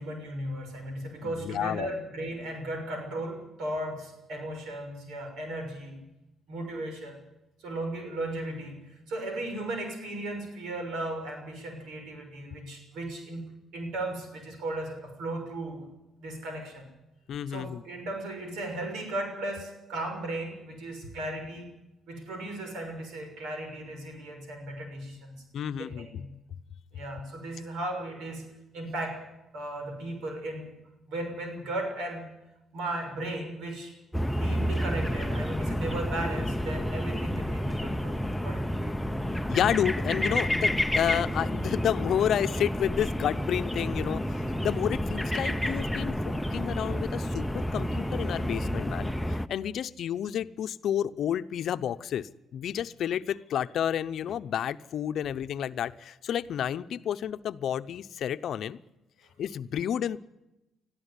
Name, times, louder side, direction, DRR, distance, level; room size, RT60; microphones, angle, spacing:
voice 1, 0.0-6.0 6.5-7.2 7.6-15.9 16.2-16.9 17.5-21.7 22.1-25.5 25.8-26.4 26.9-28.5 28.7-29.3 29.5-30.7 31.1-32.3 32.7-34.0 34.3-38.2 38.4-38.9, right 1 dB, 85° right, 5 dB, 6.4 m, -36 dB
voice 2, 1.2-1.9 17.3-17.8 25.5-26.2 39.5-58.8 59.4-60.2, left 10 dB, 70° left, 12 dB, 0.8 m, -30 dB
sound 1, 34.1-49.5, equal, 5° left, 0.8 m, -30 dB
21.5 x 13.5 x 9.8 m, 0.96 s
cardioid pair, 90°, 0 cm